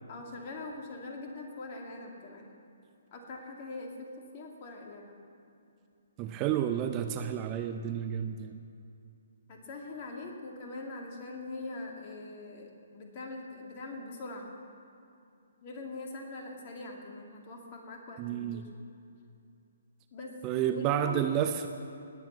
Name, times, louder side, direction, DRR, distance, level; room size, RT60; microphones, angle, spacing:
voice 1, 0.1-2.5 3.1-5.2 9.5-14.5 15.6-18.7 20.1-21.7, left 2 dB, 35° left, 1 dB, 2.4 m, -42 dB
voice 2, 6.2-8.6 18.2-18.7 20.4-21.7, right 10 dB, 25° right, 7 dB, 0.6 m, -30 dB
19.0 x 8.3 x 7.2 m, 2.6 s
figure-of-eight pair, 130°, 0 cm